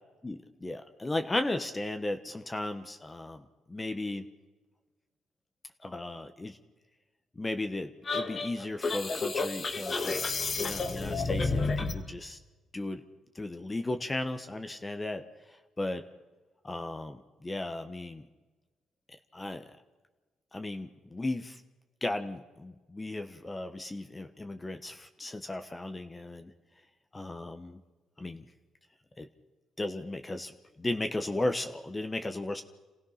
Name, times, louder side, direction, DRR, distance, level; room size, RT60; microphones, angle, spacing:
voice 1, 0.2-4.3 5.8-6.6 7.4-10.3 10.6-12.4 12.7-13.0 13.3-16.0 16.6-18.2 19.3-19.6 20.5-21.6 22.0-26.5 27.1-27.8 28.2-28.5 29.2-29.3 29.8-30.5 30.8-32.6, left 2 dB, 20° left, 7 dB, 1.1 m, -35 dB
sound 1, 8.0-12.0, left 3 dB, 40° left, 2.1 m, -31 dB
27.5 x 16.5 x 5.8 m, 1.2 s
cardioid pair, 90°, 0 cm